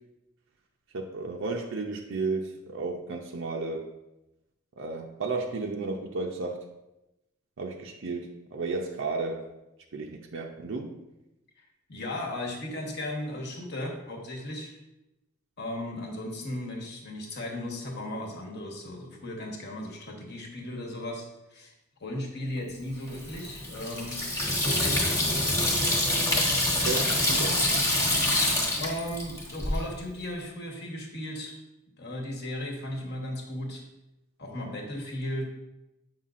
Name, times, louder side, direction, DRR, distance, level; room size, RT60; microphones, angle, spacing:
voice 1, 0.9-3.9 4.8-6.7 7.6-9.4 9.9-11.0 26.7-27.6, right 3 dB, 60° right, 1 dB, 0.5 m, -33 dB
voice 2, 11.6-14.8 15.6-21.2 21.5-21.7 22.0-24.2 24.6-25.8 26.5-26.7 28.8-31.5 32.0-33.8 34.4-35.4, left 1 dB, 50° left, 0 dB, 1.2 m, -36 dB
Water tap faucet / Sink (filling or washing), 23.1-29.8, left 1 dB, 15° left, 1.2 m, -26 dB
7.9 x 5.6 x 2.5 m, 0.95 s
head